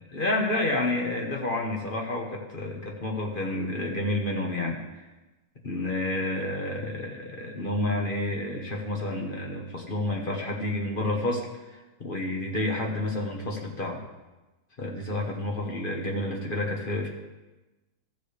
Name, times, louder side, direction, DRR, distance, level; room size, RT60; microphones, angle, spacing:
voice 1, 0.0-4.8 5.6-14.0 14.8-17.1, left 1 dB, 35° left, 0 dB, 1.2 m, -30 dB
15.0 x 6.9 x 3.3 m, 1.1 s
omnidirectional pair, 1.8 m